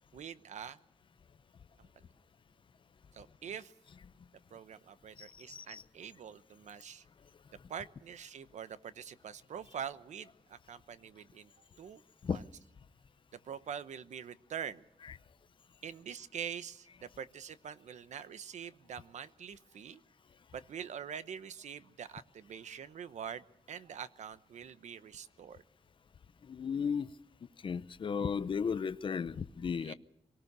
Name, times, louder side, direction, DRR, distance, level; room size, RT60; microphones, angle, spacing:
voice 1, 0.1-0.8 1.8-1.9 3.1-3.7 4.5-7.0 7.7-11.5 11.8-12.4 13.4-14.8 15.8-20.0 20.5-25.6 29.8-29.9, right 8 dB, 80° right, 1.0 m, -45 dB
voice 2, 5.2-5.8 12.2-12.4 15.1-15.2 26.5-27.1 27.6-29.9, left 6 dB, 45° left, 0.7 m, -35 dB
24.5 x 18.5 x 6.7 m
wide cardioid pair, 165°, 12 cm